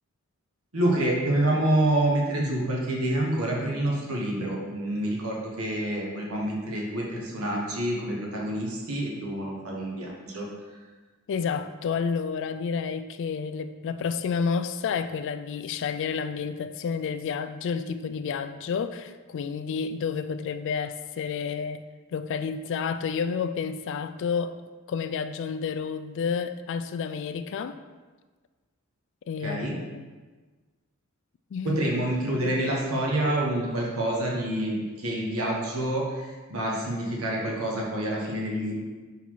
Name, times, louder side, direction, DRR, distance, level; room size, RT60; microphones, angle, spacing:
voice 1, 0.7-10.5 29.4-29.7 31.6-38.8, right 1 dB, 80° right, -2 dB, 1.2 m, -27 dB
voice 2, 11.3-21.8 22.1-24.6 24.9-27.8 29.3-30.0 31.5-31.8, left 6 dB, 60° left, 10 dB, 0.3 m, -30 dB
5.6 x 4.1 x 4.6 m, 1.3 s
head